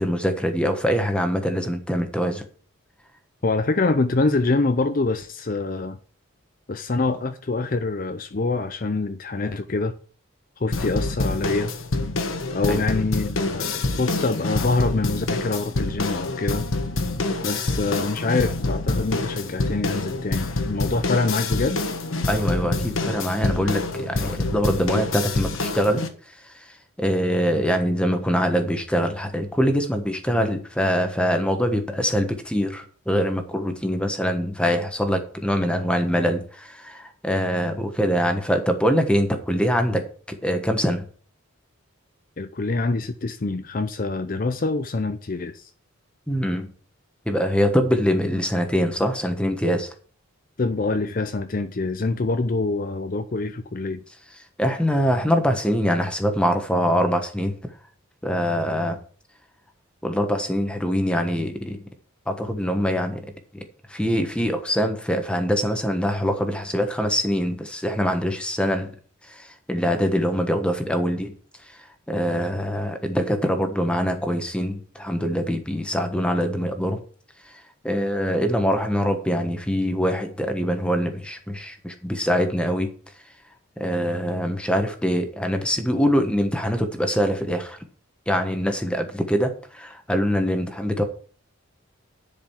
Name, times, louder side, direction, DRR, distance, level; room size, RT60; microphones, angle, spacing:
voice 1, 0.0-2.4 12.6-12.8 22.3-26.0 26.3-40.0 40.3-41.1 46.3-46.7 47.3-49.9 54.6-57.6 58.2-59.0 60.0-61.8 62.3-63.6 63.9-68.9 69.2-71.3 71.7-77.0 77.4-82.9 83.8-87.8 88.3-91.0, equal, 5° left, 1.2 m, -24 dB
voice 2, 3.4-6.0 6.7-9.9 10.6-11.7 12.5-16.7 17.4-21.9 42.4-45.7 50.6-54.0, left 3 dB, 40° left, 0.5 m, -25 dB
sound 1, 10.7-26.1, left 2 dB, 75° left, 1.3 m, -27 dB
10.5 x 5.1 x 7.2 m
head